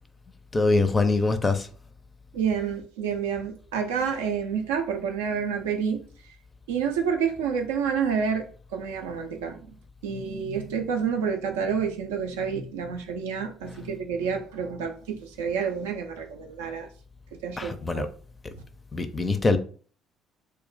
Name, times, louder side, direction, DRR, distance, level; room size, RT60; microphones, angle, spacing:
voice 1, 0.5-1.7 17.6-18.1 18.9-19.6, left 3 dB, 25° left, 0.4 m, -23 dB
voice 2, 2.3-6.0 6.7-8.5 8.7-9.8 10.0-16.9 17.3-18.1 18.5-18.6, right 6 dB, 75° right, 0.4 m, -29 dB
2.3 x 2.0 x 3.7 m
figure-of-eight pair, 50°, 0 cm